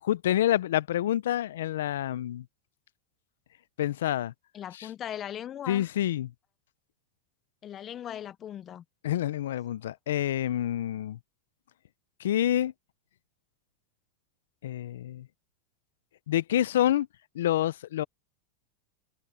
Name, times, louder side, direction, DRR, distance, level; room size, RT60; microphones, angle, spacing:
voice 1, 0.0-2.4 3.8-4.3 4.8-4.9 5.7-6.3 9.0-11.2 12.2-12.7 14.6-15.3 16.3-17.1 17.3-18.0, left 12 dB, 90° left, 0.4 m, -27 dB
voice 2, 4.5-5.9 7.6-8.8, left 10 dB, 20° left, 0.3 m, -38 dB
supercardioid pair, 165°, 0 cm